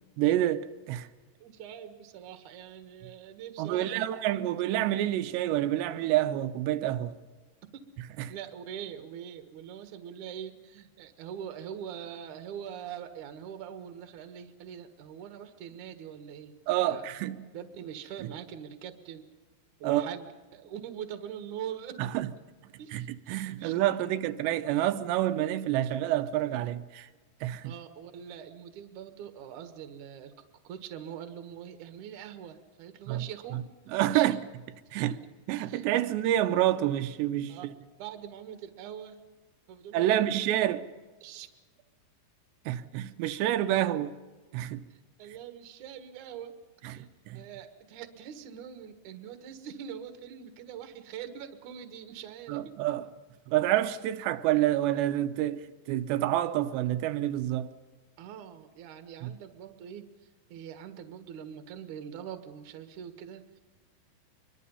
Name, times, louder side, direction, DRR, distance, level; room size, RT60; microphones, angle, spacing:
voice 1, 0.2-1.1 3.6-7.1 16.7-17.4 19.8-20.1 22.0-22.3 22.9-27.1 27.4-27.7 33.1-33.2 33.9-34.4 34.9-35.1 35.5-37.5 39.9-40.9 42.7-44.1 44.5-44.8 46.9-47.4 52.5-53.0 53.5-57.7 59.2-59.3, right 13 dB, 85° right, 3.0 m, -28 dB
voice 2, 1.4-4.0 7.7-7.8 8.2-16.5 16.9-17.1 17.5-19.3 19.8-22.1 22.8-23.8 27.6-30.3 30.6-33.6 33.9-34.4 35.0-35.2 35.6-35.8 37.5-37.7 38.0-39.2 39.7-40.4 41.2-41.5 44.9-52.8 58.2-63.6, right 9 dB, 60° right, 2.5 m, -43 dB
24.5 x 22.5 x 5.6 m
omnidirectional pair, 4.9 m